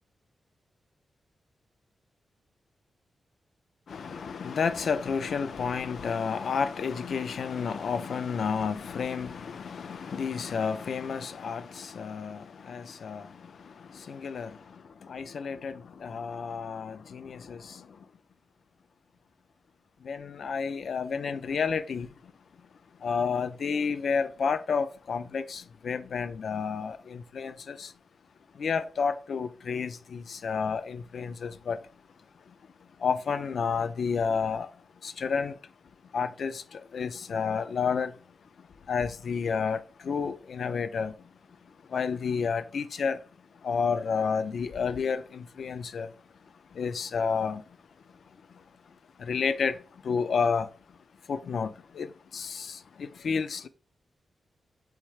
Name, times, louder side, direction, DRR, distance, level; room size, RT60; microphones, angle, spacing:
voice 1, 3.9-18.1 20.0-22.3 22.6-22.7 23.0-27.9 28.5-31.9 32.3-32.6 32.8-35.7 36.0-38.2 38.6-46.1 46.4-47.8 48.3-51.0 51.3-53.7, left 6 dB, 60° left, 0.3 m, -31 dB
3.3 x 3.1 x 4.8 m
wide cardioid pair, 165°, 0 cm